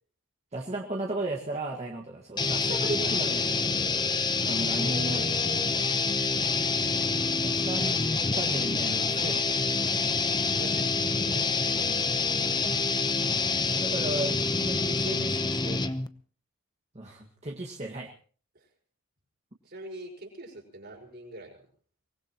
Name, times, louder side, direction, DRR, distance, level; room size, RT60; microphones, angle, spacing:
voice 1, 0.5-3.6 4.5-5.4 6.9-8.0 8.3-9.9 11.7-12.2 13.5-15.8 16.9-18.1, right 1 dB, 30° right, 0 dB, 1.7 m, -35 dB
sound 1, 2.4-16.1, left 4 dB, 20° left, 0.8 m, -27 dB
voice 2, 4.7-5.8 10.6-11.7 19.6-21.6, right 1 dB, 50° right, 1 dB, 5.5 m, -43 dB
24.0 x 19.5 x 3.0 m, 0.43 s
head